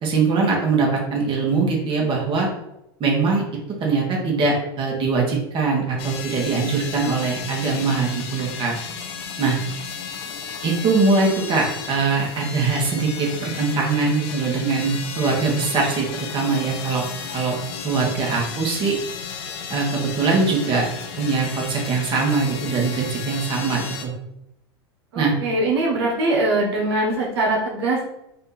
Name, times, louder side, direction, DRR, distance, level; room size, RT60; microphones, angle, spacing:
voice 1, 0.0-2.5 3.0-3.4 3.8-8.8 9.4-9.6 10.6-16.0 16.3-17.0 17.3-17.6 17.8-18.9 19.7-20.9 21.2-24.1 25.1-25.3, right 4 dB, 40° right, -1 dB, 1.6 m, -22 dB
sound 1, 6.0-24.1, left 6 dB, 70° left, 0.8 m, -34 dB
voice 2, 25.1-28.0, right 2 dB, 80° right, -2 dB, 1.2 m, -22 dB
4.2 x 2.8 x 4.0 m, 0.85 s
hypercardioid pair, 95°, 14 cm